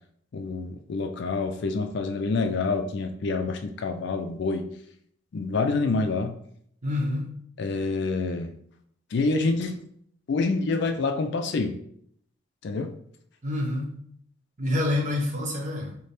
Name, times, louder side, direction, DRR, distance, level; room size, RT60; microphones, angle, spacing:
voice 1, 0.3-4.7 5.3-6.3 7.6-8.6 9.1-9.8 10.3-11.8 12.6-12.9, left 3 dB, 60° left, 6 dB, 0.4 m, -27 dB
voice 2, 6.8-7.4 13.4-14.0 14.6-16.0, left 1 dB, 40° right, -1 dB, 0.9 m, -27 dB
4.1 x 2.1 x 3.3 m, 0.65 s
head